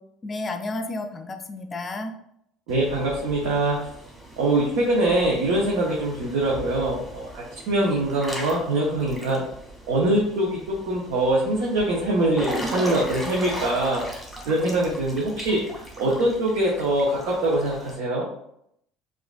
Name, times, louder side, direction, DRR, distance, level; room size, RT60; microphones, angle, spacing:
voice 1, 0.2-2.2 14.6-15.0, left 2 dB, 30° left, 7 dB, 0.5 m, -32 dB
Water / Splash splatter / Drip, 2.7-17.9, right 1 dB, 5° right, 1.3 m, -38 dB
voice 2, 2.7-3.9 4.4-9.4 9.9-14.0 14.5-18.3, right 1 dB, 70° right, -4 dB, 0.7 m, -23 dB
4.6 x 2.5 x 2.2 m, 0.74 s
hypercardioid pair, 70°, 0 cm